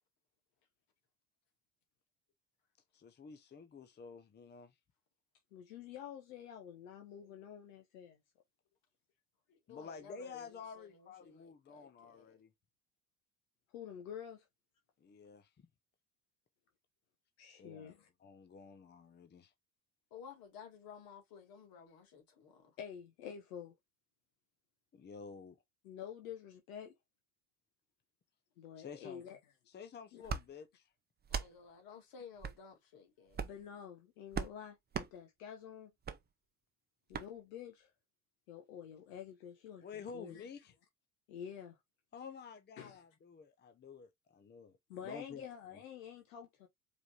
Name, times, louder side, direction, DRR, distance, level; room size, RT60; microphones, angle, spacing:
voice 1, 2.9-4.7 9.7-12.5 15.0-15.7 17.6-19.5 24.9-25.6 28.8-29.2 29.7-30.9 39.8-40.8 42.1-45.5, left 5 dB, 25° left, 0.7 m, -51 dB
voice 2, 5.5-8.2 13.7-14.4 17.4-18.1 22.8-23.7 25.8-26.9 28.6-29.4 30.1-30.2 33.4-35.9 37.1-37.9 38.5-39.8 40.1-40.4 41.3-41.8 42.8-43.0 44.9-46.7, left 8 dB, 70° left, 1.0 m, -48 dB
voice 3, 9.5-12.4 20.1-22.8 31.3-33.6, left 6 dB, 55° left, 2.3 m, -55 dB
sound 1, 30.2-30.4 31.2-31.5 32.4-32.6 33.3-33.6 34.3-34.5 34.9-35.1 36.0-36.2 37.1-37.3, right 6 dB, 25° right, 0.7 m, -38 dB
4.9 x 3.3 x 2.5 m
hypercardioid pair, 65°, 42 cm